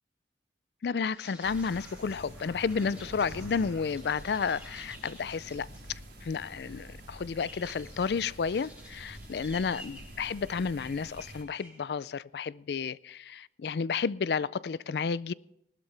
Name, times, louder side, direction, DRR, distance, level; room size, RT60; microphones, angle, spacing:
voice 1, 0.8-15.3, left 5 dB, 65° left, 0.4 m, -32 dB
sound 1, 1.1-11.8, left 1 dB, 5° right, 3.9 m, -52 dB
sound 2, 1.4-11.4, right 1 dB, 80° right, 3.9 m, -47 dB
20.0 x 12.5 x 3.4 m
head